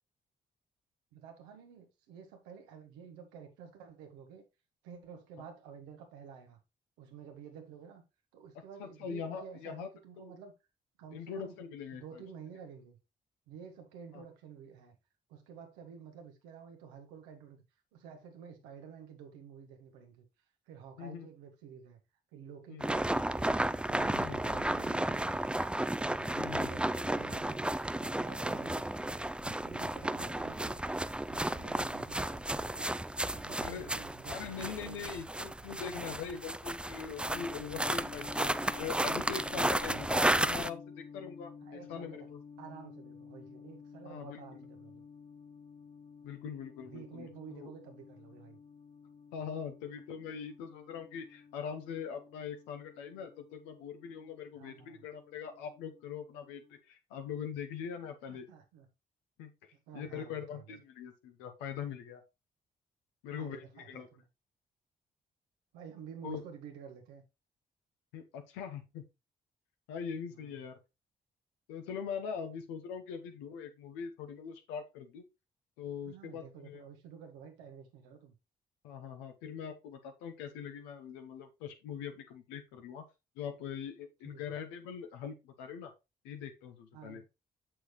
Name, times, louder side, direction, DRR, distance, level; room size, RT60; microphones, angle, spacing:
voice 1, 1.1-4.4 4.8-6.6 7.0-8.0 8.3-10.5 11.0-11.5 11.9-13.0 13.5-15.0 15.3-17.6 17.9-20.2 20.7-22.0 22.3-23.5 23.9-25.7 26.1-27.7 28.0-29.1 29.4-31.0 31.3-32.9 33.3-35.1 35.6-36.4 41.6-42.3 42.6-45.0 46.8-48.6 54.6-55.0 58.3-58.9 59.9-60.8 63.3-64.2 65.7-67.2 70.3-70.6 76.0-78.3 84.2-84.5 86.9-87.2, right 7 dB, 90° right, 1.2 m, -51 dB
voice 2, 8.8-9.9 10.2-10.3 11.1-12.2 14.1-14.2 21.0-21.3 22.7-22.9 24.2-24.4 26.4-26.8 33.6-33.9 34.3-38.5 38.8-42.4 44.0-44.6 46.2-47.7 49.3-58.5 59.4-59.5 59.9-62.2 63.2-64.1 66.2-66.4 68.1-69.0 69.9-70.8 71.7-75.2 75.8-76.8 78.8-83.0 83.4-85.9 86.2-87.2, left 7 dB, 90° left, 0.9 m, -42 dB
sound 1, 22.8-40.7, right 1 dB, 5° right, 0.4 m, -33 dB
sound 2, 37.3-56.8, left 6 dB, 45° left, 1.0 m, -52 dB
6.5 x 6.1 x 3.1 m
hypercardioid pair, 45°, 18 cm